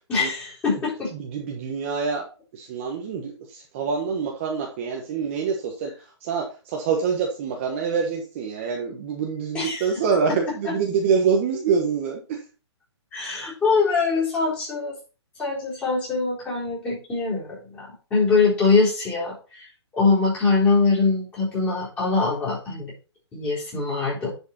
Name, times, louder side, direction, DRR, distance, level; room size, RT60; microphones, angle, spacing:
voice 1, 0.1-1.1 9.5-10.0 10.6-10.7 13.1-15.0 15.4-17.9 18.1-19.6 19.9-22.9 23.3-24.3, left 4 dB, 10° left, -6 dB, 4.0 m, -23 dB
voice 2, 1.2-2.2 2.5-5.9 6.2-6.4 6.7-12.2, right 6 dB, 25° right, 1 dB, 1.3 m, -25 dB
10.5 x 5.2 x 4.3 m, 0.34 s
hypercardioid pair, 170°, 15 cm